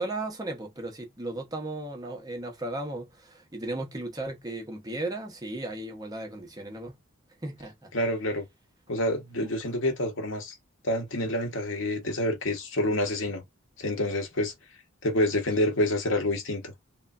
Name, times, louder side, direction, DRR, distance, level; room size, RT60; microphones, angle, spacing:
voice 1, 0.0-7.0 7.4-7.9 9.7-9.8, right 2 dB, 20° right, 0.6 m, -35 dB
voice 2, 7.9-8.5 8.9-10.5 10.8-13.4 13.8-14.5 15.0-16.7, left 1 dB, 60° left, 0.8 m, -27 dB
3.1 x 2.1 x 2.3 m
head